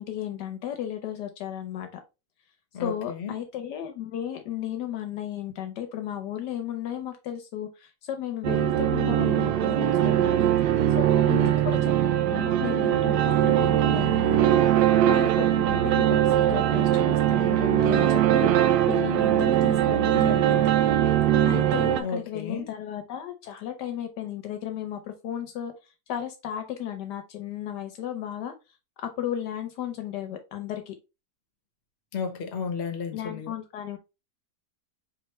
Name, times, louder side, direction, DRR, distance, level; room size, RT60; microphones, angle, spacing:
voice 1, 0.0-1.9 2.8-10.5 11.0-11.9 12.2-14.5 15.0-20.7 21.5-25.7 26.1-28.5 29.0-30.9 33.1-34.0, left 10 dB, 75° left, 1.2 m, -34 dB
voice 2, 2.7-3.3 11.3-11.8 22.0-22.7 32.1-33.5, left 5 dB, 45° left, 1.0 m, -33 dB
sound 1, 8.4-22.0, right 11 dB, 85° right, 1.3 m, -21 dB
4.4 x 3.2 x 3.0 m
omnidirectional pair, 2.0 m